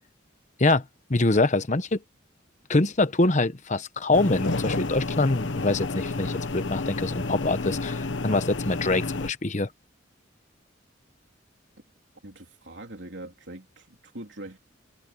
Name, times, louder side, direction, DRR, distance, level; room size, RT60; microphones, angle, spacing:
voice 1, 1.1-2.0 2.7-9.7, left 2 dB, 40° left, 1.0 m, -24 dB
sound 1, 4.1-9.3, left 3 dB, 70° left, 1.1 m, -30 dB
voice 2, 12.2-14.6, right 1 dB, 70° right, 3.4 m, -42 dB
head